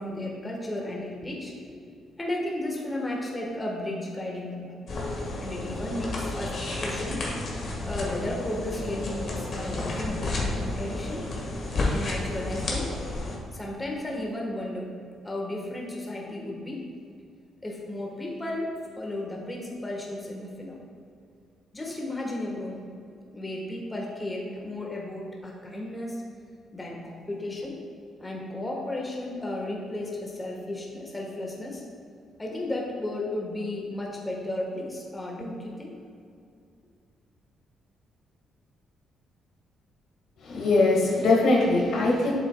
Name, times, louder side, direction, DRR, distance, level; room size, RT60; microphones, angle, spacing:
voice 1, 0.0-1.8 2.2-4.8 5.4-7.2 7.8-11.2 11.9-12.9 13.5-14.9 15.2-16.8 17.6-20.8 21.7-22.8 23.3-26.2 26.7-27.8 28.2-31.8 32.4-35.9, left 1 dB, 15° left, -2 dB, 1.3 m, -34 dB
sound 1, 4.9-13.4, left 2 dB, 50° left, 1.5 m, -31 dB
voice 2, 40.4-42.3, left 2 dB, 75° left, -2 dB, 1.6 m, -21 dB
8.2 x 7.4 x 2.2 m, 2.4 s
cardioid pair, 90°, 0 cm